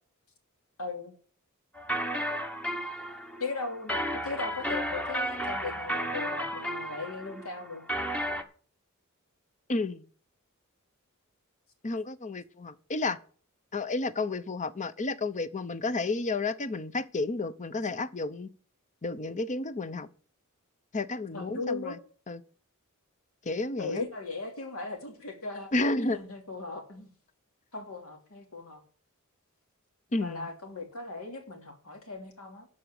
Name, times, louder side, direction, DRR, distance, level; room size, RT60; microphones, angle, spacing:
voice 1, 0.8-1.1 3.4-7.8 21.3-22.0 23.8-25.7 26.1-27.1 27.7-28.8 30.2-32.7, left 3 dB, 70° left, 3.0 m, -38 dB
sound 1, 1.8-8.4, equal, 5° left, 1.1 m, -33 dB
voice 2, 9.7-10.0 11.8-13.2 13.7-18.5 19.0-20.1 20.9-22.0 22.3-22.4 23.4-24.0 25.7-26.2 30.1-30.5, left 3 dB, 35° left, 0.8 m, -31 dB
13.0 x 5.1 x 8.2 m
head